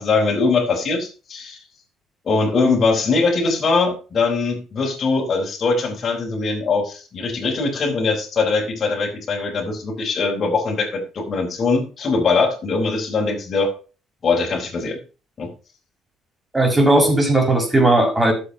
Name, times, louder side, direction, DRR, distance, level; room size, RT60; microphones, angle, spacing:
voice 1, 0.0-1.6 2.2-13.7 14.2-15.0 15.4-15.5, left 4 dB, 40° left, -3 dB, 4.2 m, -21 dB
voice 2, 16.5-18.3, right 2 dB, 15° right, 2 dB, 5.7 m, -16 dB
11.5 x 7.6 x 5.7 m, 0.35 s
cardioid pair, 90°, 0 cm